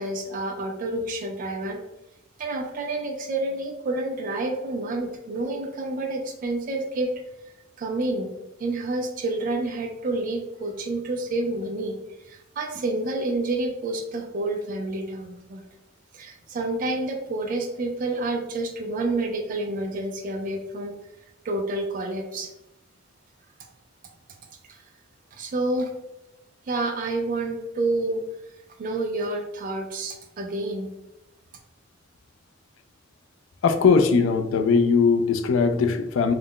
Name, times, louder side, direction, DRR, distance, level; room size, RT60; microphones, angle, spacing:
voice 1, 0.0-1.8 2.4-7.1 7.8-8.3 8.6-12.0 12.2-15.7 16.1-21.0 21.4-22.5 24.7-24.8 25.3-25.9 26.7-28.2 28.8-30.9, right 2 dB, 45° right, 2 dB, 0.3 m, -29 dB
voice 2, 33.6-36.3, left 5 dB, 70° left, 8 dB, 0.3 m, -20 dB
2.3 x 2.0 x 3.5 m, 0.92 s
head